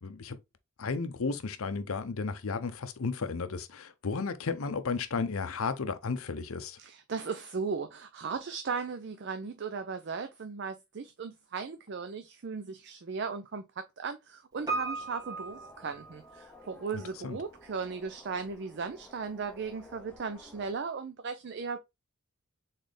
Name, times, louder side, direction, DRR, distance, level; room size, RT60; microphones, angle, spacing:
voice 1, 0.0-0.4 0.8-6.8 17.2-17.4, left 4 dB, 70° left, 0.6 m, -33 dB
voice 2, 6.8-13.6 14.0-21.8, right 5 dB, 50° right, 0.4 m, -37 dB
sound 1, 14.6-20.7, left 1 dB, 5° left, 0.6 m, -54 dB
Piano, 14.7-16.7 17.0-17.1, right 3 dB, 15° right, 1.2 m, -37 dB
4.1 x 3.9 x 3.2 m
head